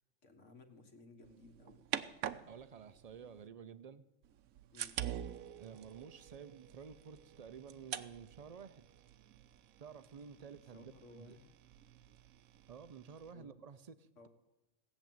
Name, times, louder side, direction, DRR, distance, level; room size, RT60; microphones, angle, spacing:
voice 1, 0.2-1.8 4.7-5.0 10.7-11.5 13.2-13.5 14.2-14.3, left 3 dB, 65° left, 1.9 m, -58 dB
sound 1, 1.2-3.5 4.2-13.3, right 10 dB, 85° right, 1.1 m, -47 dB
voice 2, 2.5-4.0 5.6-8.9 9.8-11.4 12.7-14.3, right 7 dB, 65° right, 0.3 m, -52 dB
17.0 x 7.3 x 9.2 m
omnidirectional pair, 1.4 m